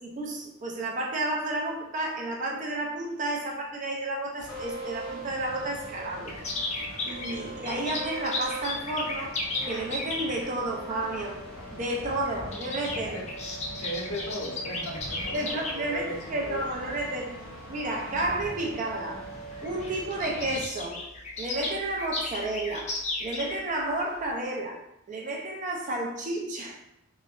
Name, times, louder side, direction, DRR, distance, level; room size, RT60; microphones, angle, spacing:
voice 1, 0.0-6.4 7.1-9.4 9.7-11.4 11.7-13.2 15.3-17.3 17.7-19.2 19.6-21.0 21.4-22.9 23.2-24.8 25.1-26.8, right 2 dB, 35° right, 0 dB, 0.4 m, -31 dB
sound 1, 4.4-20.6, right 1 dB, 5° left, 0.8 m, -41 dB
sound 2, 6.3-10.5 11.5-11.8 12.1-15.7 16.4-16.7 17.4-17.5 17.8-17.9 18.9-19.0 19.2-19.3 19.5-23.9 24.2-24.3, left 2 dB, 30° left, 0.3 m, -35 dB
voice 2, 13.8-16.7, left 1 dB, 80° left, -1 dB, 0.6 m, -37 dB
3.0 x 2.1 x 2.3 m, 0.82 s
head